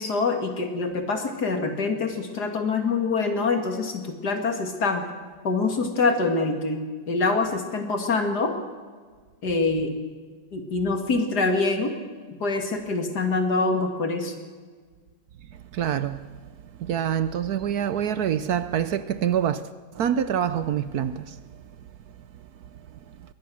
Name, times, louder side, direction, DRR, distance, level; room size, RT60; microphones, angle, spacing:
voice 1, 0.0-5.1 5.4-8.5 9.4-9.9 10.5-11.9 12.3-14.3, left 3 dB, 70° left, 2.9 m, -25 dB
voice 2, 15.7-16.3 16.8-19.6 19.9-21.4, right 9 dB, 70° right, 1.2 m, -26 dB
22.5 x 19.5 x 6.3 m
omnidirectional pair, 1.8 m